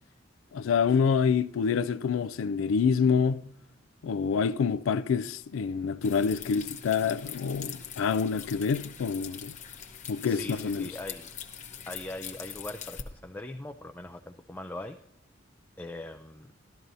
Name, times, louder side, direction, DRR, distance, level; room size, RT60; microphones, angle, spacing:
voice 1, 0.5-3.4 4.0-9.5 10.1-10.9, left 6 dB, 85° left, 0.4 m, -27 dB
sound 1, 6.0-13.0, left 8 dB, 40° left, 0.8 m, -43 dB
voice 2, 10.2-11.3 11.9-15.0 15.8-16.5, left 1 dB, 10° left, 0.4 m, -41 dB
13.0 x 12.5 x 2.7 m
head